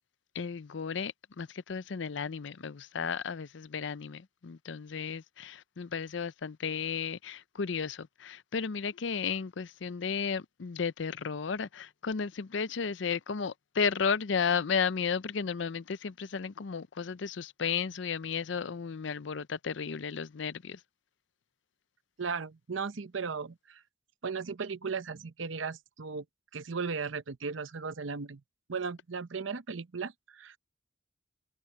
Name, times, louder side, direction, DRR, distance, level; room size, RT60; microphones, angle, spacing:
voice 1, 0.3-20.8, left 6 dB, 75° left, 0.5 m, -34 dB
voice 2, 22.2-23.8 24.2-26.2 26.5-28.4 28.7-30.6, right 5 dB, 85° right, 0.8 m, -36 dB
head